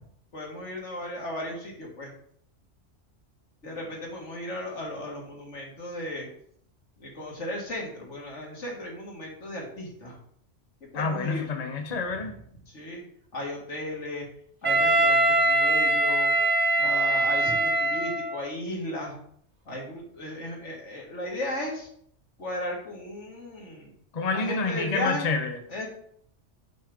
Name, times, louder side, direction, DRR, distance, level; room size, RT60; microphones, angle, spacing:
voice 1, 0.3-2.1 3.6-6.3 7.0-10.2 10.9-11.4 11.8-12.0 12.7-13.0 13.3-14.3 14.6-16.3 16.8-19.2 19.7-21.9 22.4-23.9 24.3-25.3 25.7-25.9, left 1 dB, 80° left, -2 dB, 2.2 m, -35 dB
voice 2, 10.9-12.4 24.1-25.6, left 4 dB, 40° left, 5 dB, 0.8 m, -28 dB
Wind instrument woodwind instrument, 14.6-18.5, right 2 dB, 35° right, 1.3 m, -23 dB
7.7 x 5.3 x 3.5 m, 0.65 s
omnidirectional pair, 1.2 m